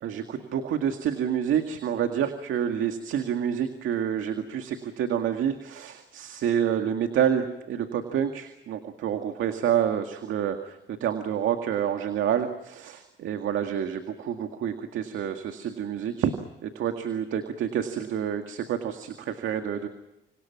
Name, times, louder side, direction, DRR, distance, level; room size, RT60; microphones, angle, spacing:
voice 1, 0.0-16.3 16.6-19.9, right 9 dB, 80° right, 6 dB, 2.2 m, -28 dB
28.5 x 26.5 x 6.0 m, 0.93 s
cardioid pair, 90°, 20 cm